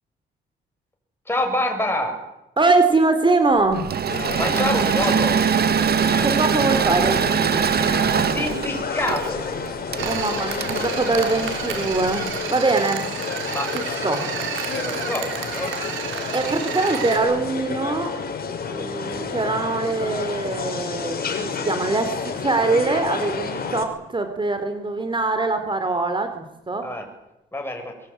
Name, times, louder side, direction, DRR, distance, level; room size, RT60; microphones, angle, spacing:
voice 1, 1.3-2.1 4.4-5.3 8.3-9.4 13.5-13.7 14.0-14.3 14.8-15.7 26.8-27.0 27.5-27.9, left 1 dB, 10° left, 3 dB, 7.9 m, -26 dB
voice 2, 2.6-3.9 6.2-7.2 10.0-13.0 13.7-14.2 16.3-18.1 18.7-26.9, right 3 dB, 25° right, 8 dB, 4.0 m, -23 dB
Engine / Mechanisms, 3.7-12.1, right 7 dB, 55° right, 1.9 m, -22 dB
crowd int large metro entrance after concert R, 4.1-23.8, left 5 dB, 50° left, 5.7 m, -30 dB
sound 1, 10.0-17.2, right 8 dB, 85° right, 6.2 m, -31 dB
23.5 x 22.5 x 9.3 m, 0.91 s
cardioid pair, 90°, 20 cm